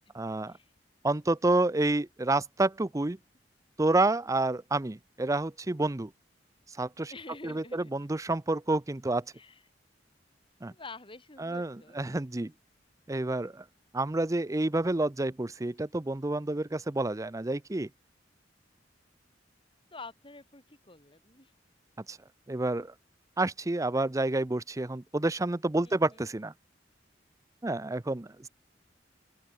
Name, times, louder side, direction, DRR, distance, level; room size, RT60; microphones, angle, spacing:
voice 1, 0.1-0.6 1.0-3.2 3.8-6.1 6.7-7.1 7.4-9.2 10.6-10.7 11.4-12.5 13.1-13.6 13.9-17.9 22.1-22.2 22.5-22.9 23.4-26.5 27.6-28.5, right 2 dB, 20° right, 0.6 m, -29 dB
voice 2, 7.1-7.9 9.3-9.6 10.7-12.0 19.9-21.5 25.8-26.2, left 3 dB, 30° left, 6.1 m, -48 dB
open air
head